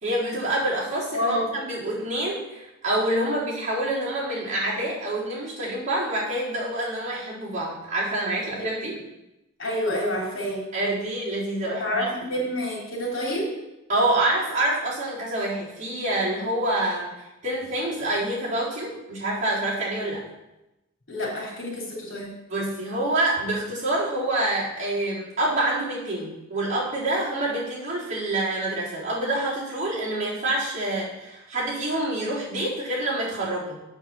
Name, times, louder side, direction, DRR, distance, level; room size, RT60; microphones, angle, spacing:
voice 1, 0.0-9.0 10.7-12.1 13.9-17.1 17.4-20.2 22.5-33.8, right 1 dB, 35° right, -7 dB, 3.8 m, -27 dB
voice 2, 1.1-1.5 8.7-8.8 9.6-10.6 11.7-13.5 21.1-22.3, equal, 65° left, -2 dB, 3.5 m, -28 dB
8.1 x 5.9 x 7.0 m, 0.94 s
head